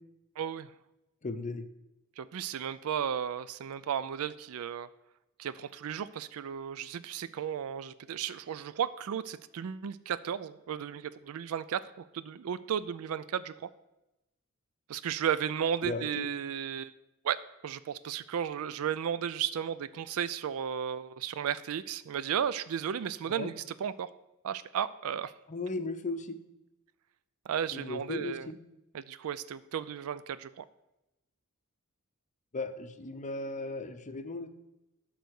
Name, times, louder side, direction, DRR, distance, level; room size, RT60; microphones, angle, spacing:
voice 1, 0.4-0.7 2.2-4.9 5.4-11.8 12.1-13.7 14.9-16.9 17.2-17.4 17.6-23.5 23.8-24.1 24.4-25.3 27.5-28.5 28.9-30.6, right 8 dB, 70° right, 16 dB, 0.4 m, -34 dB
voice 2, 1.2-1.7 15.8-16.3 23.3-23.5 25.5-26.4 27.7-28.6 32.5-34.5, left 3 dB, 35° left, 9 dB, 0.6 m, -36 dB
11.0 x 4.0 x 6.4 m, 0.93 s
head